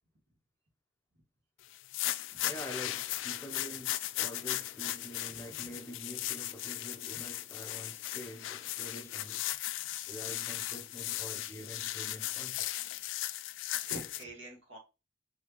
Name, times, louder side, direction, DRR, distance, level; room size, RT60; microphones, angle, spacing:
sound 1, 1.7-14.2, left 15 dB, 80° left, 0.3 m, -37 dB
voice 1, 2.4-9.8 10.1-12.7, equal, 15° left, 0.5 m, -46 dB
voice 2, 13.8-14.8, right 1 dB, 75° right, 1.8 m, -47 dB
4.7 x 2.7 x 2.9 m
head